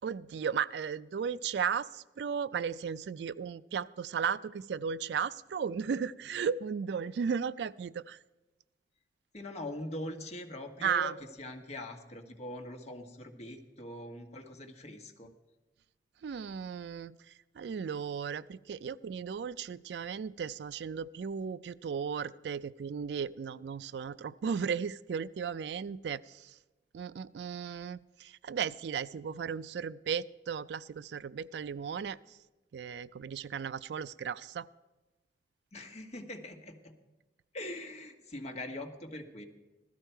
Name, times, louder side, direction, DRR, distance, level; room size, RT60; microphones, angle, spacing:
voice 1, 0.0-8.2 10.8-11.1 16.2-17.2 17.6-26.6 26.9-32.4 32.7-34.7, right 7 dB, 70° right, 18 dB, 0.3 m, -35 dB
voice 2, 9.3-15.3 35.7-36.9 37.5-39.4, left 1 dB, 40° left, 4 dB, 1.5 m, -42 dB
16.0 x 13.0 x 4.5 m, 1.1 s
head